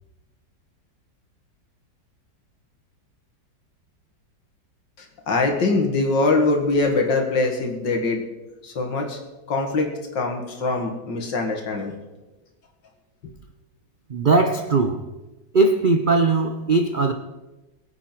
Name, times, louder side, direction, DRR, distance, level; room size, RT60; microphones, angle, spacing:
voice 1, 5.3-8.2 8.6-9.2 9.5-11.9, left 3 dB, 75° left, 2.6 m, -23 dB
voice 2, 14.1-15.1 15.5-17.1, right 3 dB, 60° right, 0.5 m, -19 dB
22.0 x 8.0 x 4.6 m
omnidirectional pair, 2.0 m